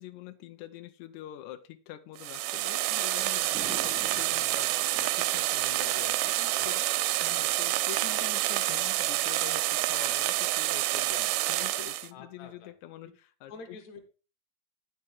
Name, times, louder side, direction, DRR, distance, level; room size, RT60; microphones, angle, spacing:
voice 1, 0.0-6.4 6.6-6.8 7.2-13.8, left 12 dB, 90° left, 9 dB, 1.7 m, -45 dB
sound 1, 2.2-12.1, right 16 dB, 85° right, 2.4 m, -28 dB
sound 2, 3.5-10.0, right 2 dB, 60° right, 0.3 m, -50 dB
voice 2, 6.4-6.8 12.1-12.7 13.5-14.0, left 4 dB, 60° left, 6 dB, 2.4 m, -47 dB
9.4 x 5.8 x 4.5 m, 0.34 s
omnidirectional pair, 4.2 m